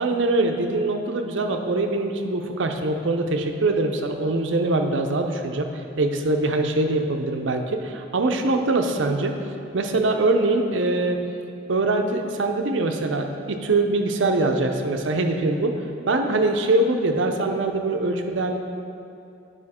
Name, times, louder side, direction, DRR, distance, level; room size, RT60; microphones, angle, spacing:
voice 1, 0.0-5.7 6.0-9.3 9.7-11.2 11.7-15.7 16.1-18.6, right 2 dB, 70° right, 4 dB, 0.6 m, -23 dB
8.8 x 5.0 x 4.2 m, 2.6 s
head